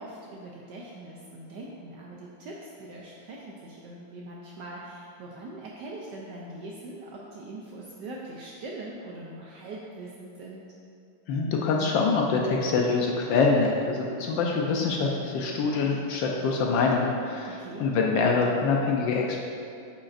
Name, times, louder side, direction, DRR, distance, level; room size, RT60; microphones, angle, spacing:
voice 1, 0.0-10.6 17.5-17.9, right 2 dB, 75° right, -3 dB, 1.0 m, -42 dB
voice 2, 11.3-19.4, left 4 dB, 75° left, 0 dB, 1.2 m, -25 dB
8.4 x 5.0 x 2.5 m, 2.4 s
omnidirectional pair, 2.4 m